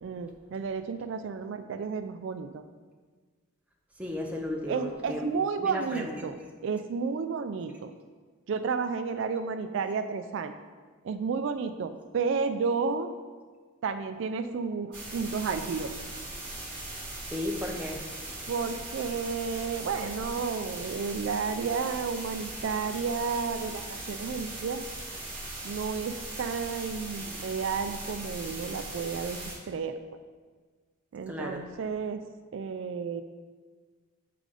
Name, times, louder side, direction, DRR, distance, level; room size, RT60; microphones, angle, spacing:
voice 1, 0.0-2.6 4.7-7.9 8.5-10.5 11.0-13.1 13.8-15.9 18.5-24.8 25.6-29.4 29.7-30.0 31.1-32.2 32.5-33.2, right 5 dB, 65° right, 9 dB, 0.3 m, -32 dB
voice 2, 4.0-6.3 17.3-18.0 31.3-31.6, left 1 dB, 5° right, -1 dB, 0.7 m, -35 dB
sound 1, 14.9-29.5, right 2 dB, 25° right, 2.1 m, -39 dB
7.6 x 3.8 x 4.8 m, 1.5 s
head